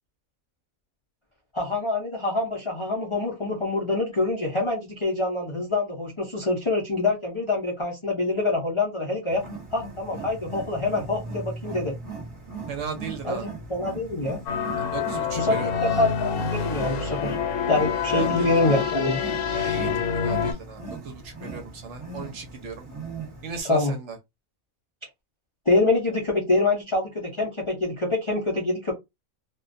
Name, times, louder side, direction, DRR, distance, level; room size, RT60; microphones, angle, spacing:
voice 1, 1.5-9.4 9.7-11.9 13.2-14.4 15.3-17.3 17.7-19.2 23.7-23.9 25.7-28.9, left 2 dB, 45° left, 0.4 m, -25 dB
Wild animals, 9.3-23.6, right 3 dB, 25° right, 1.0 m, -39 dB
voice 2, 12.7-13.5 14.8-16.0 18.0-18.8 19.5-22.8 23.4-24.2, right 5 dB, 65° right, 0.9 m, -36 dB
sound 1, 14.5-20.5, left 7 dB, 80° left, 1.1 m, -27 dB
2.5 x 2.2 x 2.5 m
omnidirectional pair, 1.5 m